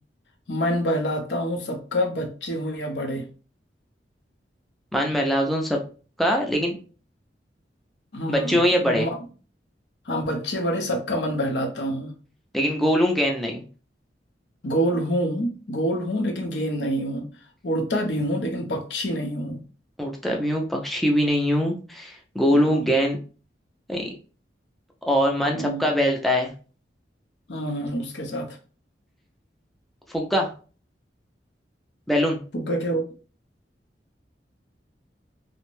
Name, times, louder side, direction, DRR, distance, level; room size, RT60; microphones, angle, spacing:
voice 1, 0.5-3.3 8.1-9.2 10.1-12.1 14.6-17.3 17.6-19.6 22.5-22.9 25.5-25.9 27.5-28.6 32.5-33.0, equal, 80° left, 3 dB, 0.6 m, -27 dB
voice 2, 4.9-5.8 6.2-6.8 8.3-9.1 12.5-13.6 20.0-23.2 23.9-24.1 25.0-26.5 30.1-30.5 32.1-32.4, equal, ahead, 0 dB, 0.4 m, -22 dB
2.6 x 2.1 x 3.0 m, 0.37 s
head